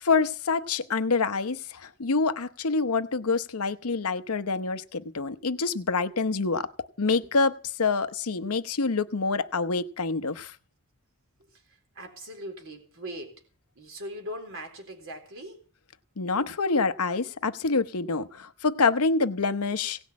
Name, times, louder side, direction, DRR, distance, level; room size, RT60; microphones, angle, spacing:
voice 1, 0.0-10.5 16.2-20.0, left 4 dB, 75° left, 0.9 m, -26 dB
voice 2, 11.5-13.4 13.8-15.6, equal, 65° right, 3.8 m, -40 dB
17.5 x 6.2 x 8.5 m
head